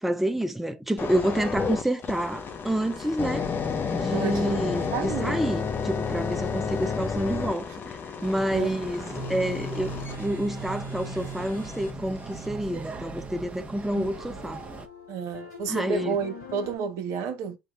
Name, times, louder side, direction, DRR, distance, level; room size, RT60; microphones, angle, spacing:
voice 1, 0.0-3.5 3.9-9.0 9.3-14.6 15.7-16.2, right 1 dB, 5° right, 0.6 m, -28 dB
sound 1, 1.0-11.9 12.5-12.7, left 5 dB, 40° left, 0.9 m, -32 dB
voice 2, 4.1-5.4 8.5-8.8 13.9-14.1 15.1-17.6, right 6 dB, 65° right, 1.0 m, -31 dB
sound 2, 8.2-14.9, right 4 dB, 20° right, 1.1 m, -40 dB
sound 3, 9.1-16.8, equal, 80° left, 1.8 m, -41 dB
3.7 x 2.4 x 4.2 m
hypercardioid pair, 65°, 6 cm